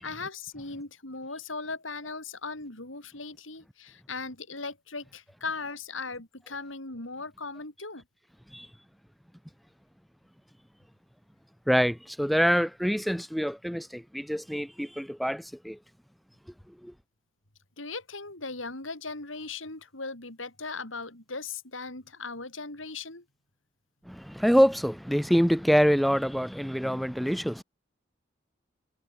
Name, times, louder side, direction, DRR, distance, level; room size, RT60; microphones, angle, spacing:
voice 1, 0.0-8.0 17.8-23.2, left 4 dB, 85° left, 5.8 m, -38 dB
voice 2, 11.7-15.8 16.8-16.9 24.1-27.6, equal, ahead, 0.7 m, -25 dB
head